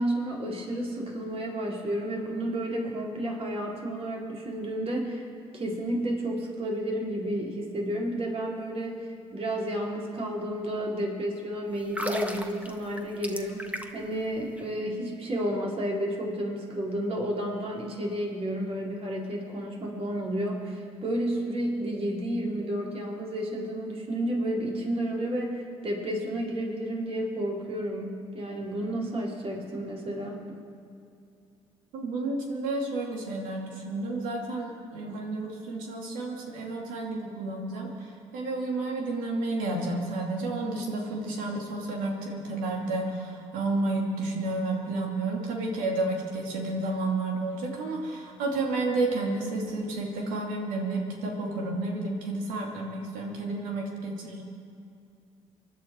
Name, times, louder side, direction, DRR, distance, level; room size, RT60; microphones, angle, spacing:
voice 1, 0.0-5.3 5.5-30.4, right 1 dB, 45° right, -2 dB, 4.1 m, -31 dB
sound 1, 11.8-14.1 14.4-14.6, right 1 dB, 10° right, 1.6 m, -34 dB
voice 2, 31.9-54.4, right 2 dB, 80° right, 0 dB, 2.7 m, -31 dB
24.0 x 11.0 x 4.7 m, 2.5 s
supercardioid pair, 60°, 14 cm